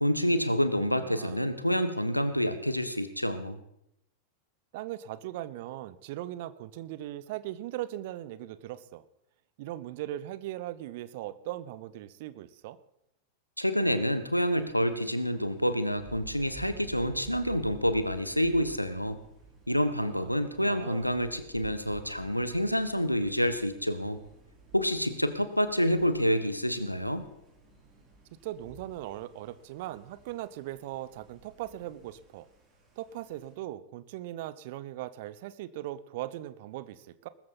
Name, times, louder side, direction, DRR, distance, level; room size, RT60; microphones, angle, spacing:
voice 1, 0.0-3.6 13.6-19.2 19.7-24.2 24.7-27.2, equal, 90° left, 11 dB, 1.2 m, -28 dB
voice 2, 1.0-1.5 4.7-9.0 9.6-12.8 20.0-20.3 20.6-21.1 28.4-32.5 33.0-37.3, right 14 dB, 50° right, 16 dB, 0.8 m, -39 dB
Thunder, 14.3-33.5, right 2 dB, 25° right, 6.6 m, -53 dB
20.0 x 14.0 x 4.2 m, 0.80 s
figure-of-eight pair, 90°, 0 cm